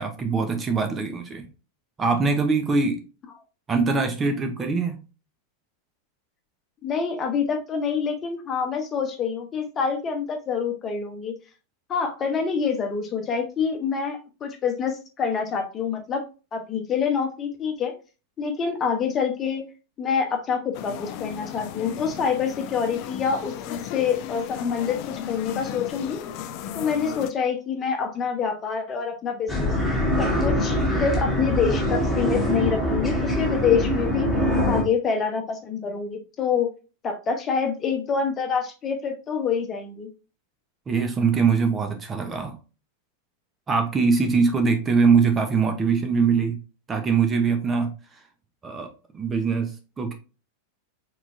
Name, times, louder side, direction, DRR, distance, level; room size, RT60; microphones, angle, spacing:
voice 1, 0.0-1.5 2.0-3.0 3.7-5.0 40.9-42.6 43.7-46.6 46.9-47.9 48.6-48.9 49.1-50.1, right 5 dB, 20° right, 5 dB, 0.7 m, -22 dB
voice 2, 6.8-11.3 11.9-16.2 16.5-17.9 18.4-19.6 20.0-26.2 26.7-29.7 30.2-34.3 34.6-36.7 37.0-40.1, left 6 dB, 25° left, 5 dB, 0.9 m, -26 dB
sound 1, 20.7-27.3, left 10 dB, 45° left, 0.4 m, -35 dB
sound 2, 29.5-34.8, left 1 dB, 5° left, 1.9 m, -23 dB
4.4 x 4.0 x 2.6 m, 0.33 s
figure-of-eight pair, 90°, 0 cm